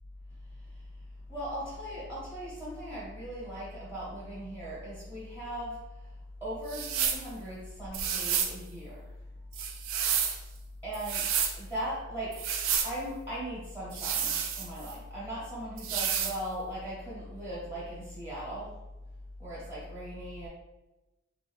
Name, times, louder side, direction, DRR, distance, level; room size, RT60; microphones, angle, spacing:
voice 1, 1.3-5.8 6.4-9.1 10.8-11.3 11.6-12.5 12.8-18.8 19.4-20.5, equal, 10° right, -7 dB, 1.0 m, -38 dB
sound 1, 6.7-7.3 7.9-8.6 9.5-10.4 10.9-11.6 12.3-12.9 13.9-14.9 15.8-16.4, right 8 dB, 80° right, 0.4 m, -30 dB
3.2 x 2.4 x 3.2 m, 1.1 s
head